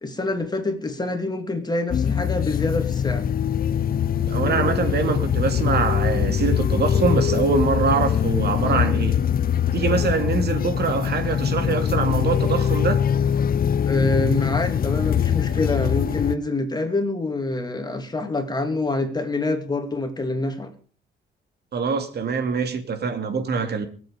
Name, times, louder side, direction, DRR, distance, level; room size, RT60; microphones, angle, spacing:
voice 1, 0.0-3.3 13.9-20.7, left 2 dB, 20° left, 2.9 m, -26 dB
sound 1, 1.9-16.4, left 8 dB, 45° left, 0.8 m, -22 dB
voice 2, 4.3-9.2 9.7-13.0 21.7-23.9, right 5 dB, 55° right, 2.7 m, -24 dB
23.5 x 8.1 x 5.1 m
cardioid pair, 90°, 20 cm